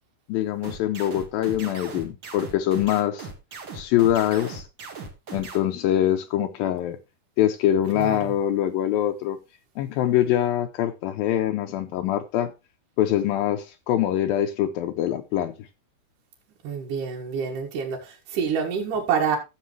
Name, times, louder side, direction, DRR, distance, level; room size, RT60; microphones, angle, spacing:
voice 1, 0.3-3.3 3.7-4.6 5.3-7.0 7.4-9.4 9.8-12.5 13.0-15.5, left 12 dB, 80° left, 2.4 m, -24 dB
sound 1, 0.6-5.6, right 4 dB, 40° right, 1.9 m, -38 dB
voice 2, 7.9-8.3 16.6-19.4, right 6 dB, 65° right, 3.1 m, -27 dB
13.0 x 7.9 x 3.2 m
omnidirectional pair, 4.2 m